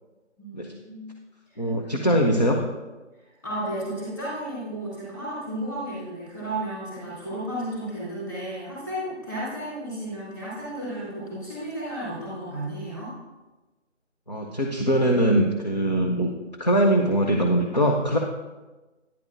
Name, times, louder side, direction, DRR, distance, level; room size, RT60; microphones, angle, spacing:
voice 1, 0.4-1.1 1.5-1.7 2.0-2.1 3.4-13.1, right 1 dB, 15° left, -9 dB, 2.9 m, -33 dB
voice 2, 1.6-2.6 14.3-16.3 16.6-18.2, right 1 dB, 35° left, 0 dB, 0.6 m, -22 dB
10.5 x 10.0 x 2.5 m, 1.2 s
figure-of-eight pair, 165°, 37 cm